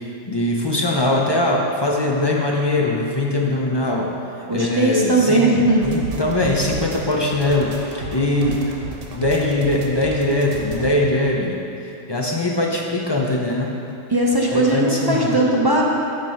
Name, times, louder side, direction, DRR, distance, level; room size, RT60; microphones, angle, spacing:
voice 1, 0.3-4.1 4.5-5.4 5.8-8.6 9.1-11.6 12.1-13.7 14.5-15.4, left 2 dB, 40° left, -2 dB, 0.3 m, -21 dB
voice 2, 4.5-5.8 14.1-15.8, right 1 dB, 30° right, -3 dB, 0.5 m, -18 dB
sound 1, 5.8-10.9, right 3 dB, 90° right, 1.2 m, -33 dB
9.2 x 3.3 x 5.6 m, 2.8 s
omnidirectional pair, 1.2 m